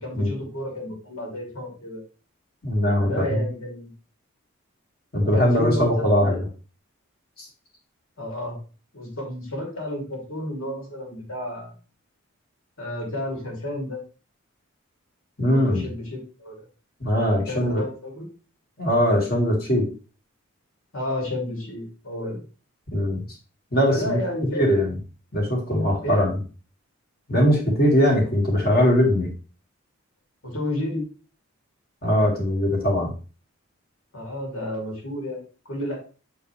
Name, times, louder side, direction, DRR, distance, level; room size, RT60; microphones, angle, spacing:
voice 1, 0.0-2.0 3.0-3.9 5.3-6.3 8.2-8.6 8.9-11.7 12.8-14.0 15.4-16.6 17.5-18.3 20.9-22.4 23.9-24.8 26.0-26.2 30.4-31.0 34.1-36.0, left 1 dB, 75° left, -1 dB, 2.7 m, -31 dB
voice 2, 2.6-3.4 5.1-6.5 7.4-7.5 15.4-15.8 17.0-17.8 18.8-19.9 22.9-23.2 23.7-24.2 24.5-24.9 25.3-26.4 27.3-29.3 32.0-33.1, equal, 45° left, -2 dB, 2.1 m, -21 dB
6.7 x 4.4 x 3.3 m, 0.35 s
head